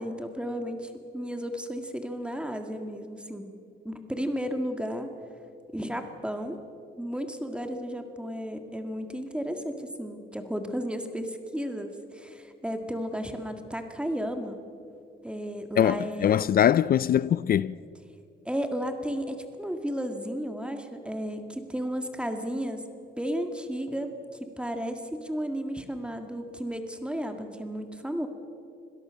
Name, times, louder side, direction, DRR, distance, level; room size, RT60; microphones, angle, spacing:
voice 1, 0.0-3.5 3.8-5.1 5.7-6.6 7.0-14.6 15.2-16.5 18.5-22.8 23.2-24.1 24.4-28.3, equal, 5° right, 1.9 m, -33 dB
voice 2, 15.8-17.7, left 10 dB, 50° left, 0.4 m, -22 dB
25.0 x 17.5 x 6.4 m
cardioid pair, 90°, 20 cm